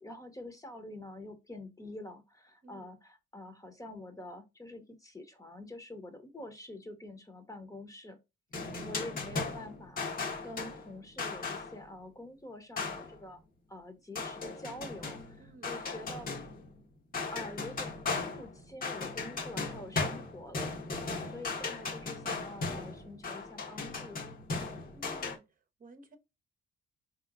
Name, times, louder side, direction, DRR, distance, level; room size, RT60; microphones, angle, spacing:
voice 1, 0.0-8.2 8.8-13.4 13.7-16.3 17.2-20.8 21.2-24.2, left 1 dB, 15° left, 1.1 m, -46 dB
wood on vents, 8.5-11.9 12.8-13.2 14.2-16.8 17.1-25.4, left 3 dB, 45° left, 1.3 m, -37 dB
voice 2, 8.6-9.2 15.4-15.8 21.2-21.8 24.9-25.4 25.8-26.2, right 2 dB, 45° right, 0.9 m, -55 dB
4.3 x 3.0 x 2.4 m
cardioid pair, 90°, 20 cm